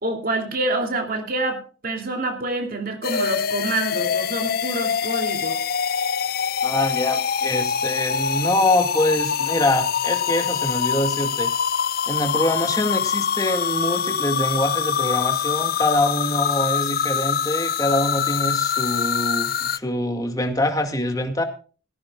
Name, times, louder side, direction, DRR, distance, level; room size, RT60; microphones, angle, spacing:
voice 1, 0.0-5.6, right 2 dB, 50° right, 4 dB, 2.8 m, -27 dB
sound 1, 3.0-19.8, left 7 dB, 50° left, 0.5 m, -24 dB
voice 2, 6.6-11.5 12.1-21.4, left 1 dB, 20° left, 5 dB, 2.0 m, -24 dB
18.0 x 15.5 x 2.4 m, 0.36 s
head